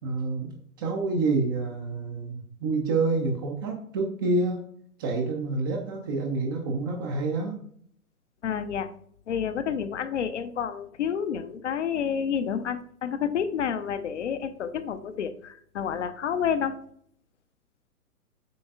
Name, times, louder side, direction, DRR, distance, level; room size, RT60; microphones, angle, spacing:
voice 1, 0.0-4.7 5.0-7.6, right 3 dB, 15° right, 1 dB, 0.5 m, -28 dB
voice 2, 8.4-8.9 9.3-16.7, left 7 dB, 50° left, 10 dB, 0.7 m, -29 dB
7.7 x 5.2 x 2.4 m, 0.63 s
figure-of-eight pair, 115°, 44 cm